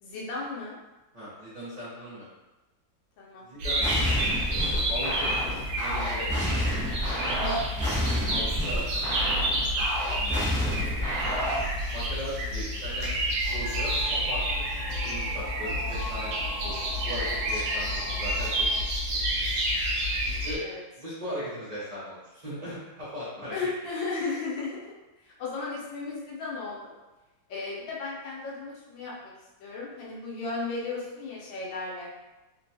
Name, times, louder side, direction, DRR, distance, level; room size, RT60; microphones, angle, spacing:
voice 1, 0.0-0.8 3.2-3.5 7.4-7.9 18.0-18.3 20.6-20.8 23.5-24.9 25.2-26.9 27.5-29.3 29.6-32.1, left 3 dB, 90° left, -5 dB, 1.4 m, -35 dB
voice 2, 1.1-2.3 3.4-3.8 4.5-6.3 7.1-7.3 8.1-9.9 10.1-11.0 11.9-18.7 19.1-19.2 20.2-20.6 21.0-23.7, equal, 40° right, -11 dB, 0.6 m, -39 dB
sound 1, 3.6-20.6, equal, 70° right, 1.1 m, -29 dB
sound 2, 3.8-11.7, equal, 15° left, 0.4 m, -30 dB
sound 3, 13.4-18.8, equal, 50° left, 1.7 m, -41 dB
3.7 x 2.2 x 2.7 m, 1.1 s
omnidirectional pair, 2.0 m